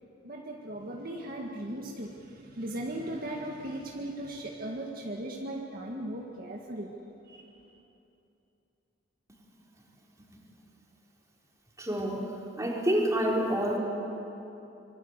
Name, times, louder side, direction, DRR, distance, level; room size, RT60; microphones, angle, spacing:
voice 1, 0.2-6.9 7.3-7.6, right 1 dB, 50° right, -1 dB, 1.9 m, -38 dB
voice 2, 11.8-12.2 12.6-13.8, equal, 15° right, -2 dB, 4.1 m, -27 dB
26.0 x 23.5 x 8.2 m, 2.9 s
head